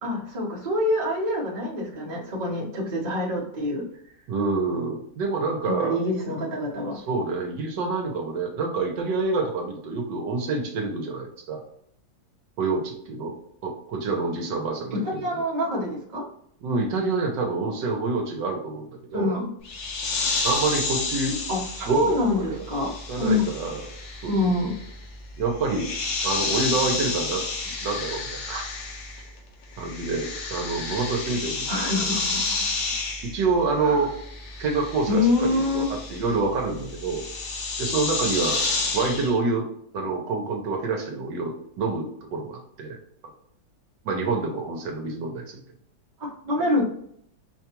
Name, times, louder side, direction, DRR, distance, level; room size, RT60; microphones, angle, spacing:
voice 1, 0.0-3.9 5.6-7.0 15.0-16.2 19.1-19.5 21.5-23.4 24.3-24.7 31.7-32.6 33.8-34.0 35.1-35.9 46.2-46.8, left 2 dB, 35° right, -4 dB, 0.8 m, -26 dB
voice 2, 4.3-6.0 7.1-11.6 12.6-13.3 13.6-15.4 16.6-19.3 20.4-21.4 21.9-22.6 23.1-23.9 24.2-24.5 25.4-25.9 26.2-27.4 27.8-28.7 29.8-31.7 33.2-34.1 34.6-37.2 37.8-38.6 38.9-39.7 39.9-43.0 44.0-45.6, right 3 dB, 75° right, 1 dB, 1.3 m, -27 dB
sound 1, 19.7-29.4 29.6-39.4, left 3 dB, 80° left, 1.4 m, -31 dB
5.1 x 2.3 x 2.9 m, 0.68 s
omnidirectional pair, 2.0 m